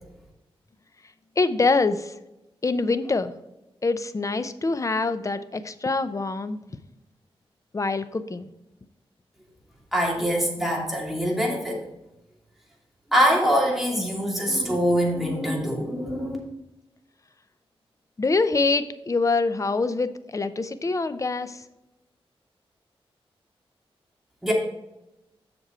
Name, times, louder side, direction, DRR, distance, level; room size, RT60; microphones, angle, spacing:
voice 1, 1.4-2.2 2.6-3.3 3.8-6.6 7.7-8.5 18.2-21.6, left 3 dB, 30° left, 12 dB, 0.6 m, -25 dB
voice 2, 9.9-11.8 13.1-16.4 24.4-24.5, equal, ahead, -2 dB, 2.7 m, -24 dB
7.4 x 6.2 x 4.4 m, 0.92 s
wide cardioid pair, 85°, 10 cm